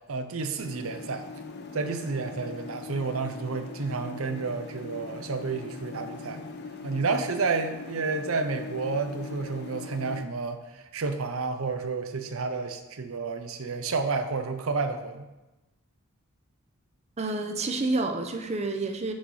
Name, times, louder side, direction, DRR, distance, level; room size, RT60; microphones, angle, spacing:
voice 1, 0.1-1.2 1.7-6.4 6.8-15.3, right 4 dB, 85° right, 7 dB, 0.7 m, -30 dB
sound 1, 0.6-10.2, left 4 dB, 50° left, 0.6 m, -41 dB
voice 2, 17.2-19.1, right 2 dB, 30° right, 5 dB, 0.6 m, -29 dB
6.3 x 5.5 x 4.8 m, 1.0 s
head